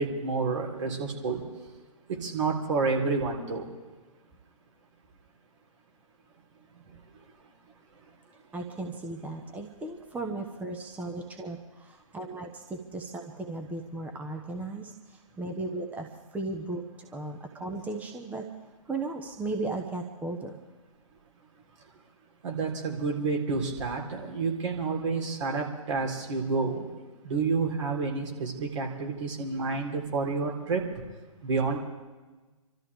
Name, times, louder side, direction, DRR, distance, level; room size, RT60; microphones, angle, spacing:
voice 1, 0.0-1.4 2.1-3.8 6.8-7.3 7.9-8.0 22.4-26.9 27.2-30.8 31.4-31.8, right 4 dB, 55° right, 0 dB, 3.6 m, -29 dB
voice 2, 8.5-18.5 18.9-20.5, right 2 dB, 10° right, 2 dB, 1.0 m, -36 dB
27.0 x 13.5 x 3.5 m, 1.2 s
figure-of-eight pair, 125°, 18 cm